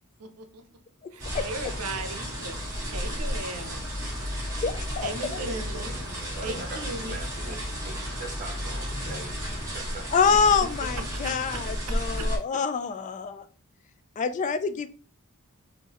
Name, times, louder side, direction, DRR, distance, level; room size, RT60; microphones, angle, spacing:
voice 1, 0.2-0.6 1.1-3.8 5.0-6.0 6.4-7.2 11.2-11.6 12.2-12.3, right 2 dB, 80° right, 8 dB, 0.7 m, -37 dB
sound 1, 1.2-12.4, equal, 15° right, 1.4 m, -33 dB
voice 2, 4.6-5.1 10.1-13.4 14.2-14.9, left 5 dB, 35° left, 11 dB, 0.3 m, -26 dB
voice 3, 5.2-10.2, right 2 dB, 35° right, 2 dB, 1.0 m, -42 dB
3.7 x 2.6 x 2.9 m, 0.37 s
head